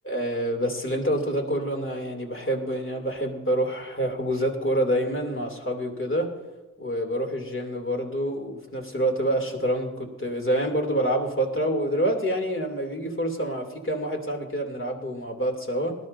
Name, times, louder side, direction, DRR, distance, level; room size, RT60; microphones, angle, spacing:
voice 1, 0.0-6.3 6.8-16.0, right 1 dB, 40° left, 1 dB, 2.9 m, -27 dB
19.5 x 12.0 x 2.7 m, 1.2 s
cardioid pair, 55°, 31 cm